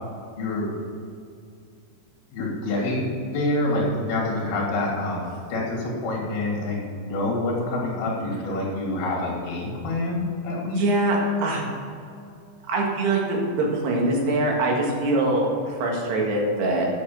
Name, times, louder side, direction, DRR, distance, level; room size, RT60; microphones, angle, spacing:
voice 1, 0.4-0.7 2.3-10.8, left 2 dB, 60° left, -3 dB, 4.3 m, -27 dB
voice 2, 10.8-11.7 12.7-16.9, right 2 dB, 65° right, -1 dB, 3.6 m, -23 dB
8.5 x 8.3 x 6.9 m, 2.4 s
omnidirectional pair, 5.3 m